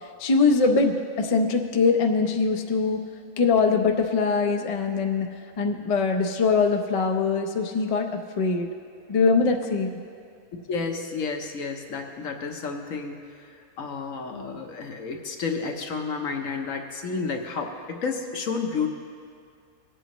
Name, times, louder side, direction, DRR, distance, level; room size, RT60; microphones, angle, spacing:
voice 1, 0.2-3.1 3.4-5.3 5.6-8.7 9.1-10.0, left 4 dB, 40° left, 3 dB, 0.5 m, -22 dB
voice 2, 10.7-13.2 13.8-18.9, left 5 dB, 70° left, 3 dB, 1.3 m, -31 dB
20.0 x 8.4 x 3.0 m, 2.2 s
omnidirectional pair, 1.5 m